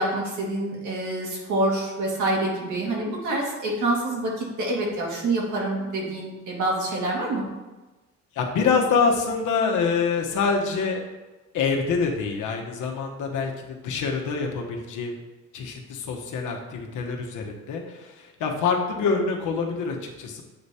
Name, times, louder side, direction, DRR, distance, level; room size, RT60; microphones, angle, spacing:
voice 1, 0.0-7.4, right 2 dB, 75° right, -2 dB, 2.0 m, -26 dB
voice 2, 8.3-11.0 11.5-15.2 15.5-20.4, left 5 dB, 80° left, 2 dB, 1.1 m, -26 dB
7.8 x 3.4 x 4.2 m, 1.1 s
cardioid pair, 90°, 30 cm